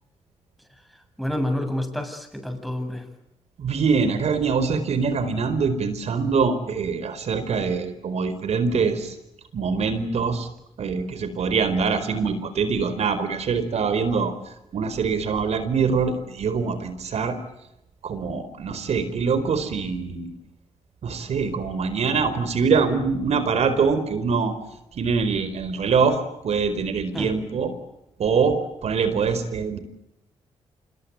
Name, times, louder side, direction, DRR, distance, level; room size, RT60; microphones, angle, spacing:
voice 1, 1.2-3.0 27.1-27.4, left 1 dB, ahead, 6 dB, 7.7 m, -28 dB
voice 2, 3.6-9.1 9.5-10.5 10.8-14.3 14.7-17.4 18.0-20.3 21.0-24.5 25.0-27.7 28.2-29.8, right 5 dB, 70° right, 12 dB, 4.5 m, -24 dB
26.5 x 22.5 x 9.4 m, 0.87 s
supercardioid pair, 55°, 12 cm